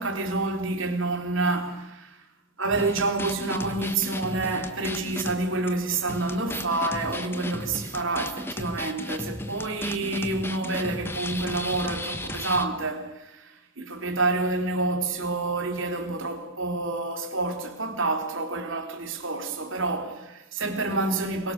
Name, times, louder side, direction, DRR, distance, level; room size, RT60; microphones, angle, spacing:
voice 1, 0.0-2.2 2.6-21.5, right 2 dB, 60° right, 3.6 m, -28 dB
sound 1, 2.7-5.4 5.7-5.8 6.1-12.7, left 1 dB, 10° left, 1.2 m, -35 dB
24.0 x 22.5 x 6.7 m
head